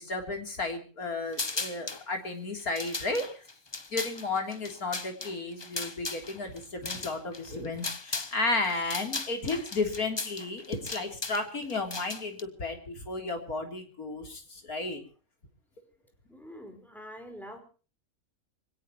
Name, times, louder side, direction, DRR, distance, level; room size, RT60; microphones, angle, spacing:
voice 1, 0.0-3.4 3.9-15.0, left 3 dB, 80° left, 3 dB, 3.9 m, -33 dB
sound 1, 1.3-2.0 2.6-8.4 8.6-12.4, left 3 dB, 20° left, 0.8 m, -37 dB
voice 2, 16.3-17.6, equal, ahead, 4 dB, 4.7 m, -45 dB
25.0 x 17.5 x 3.1 m, 0.37 s
omnidirectional pair, 1.5 m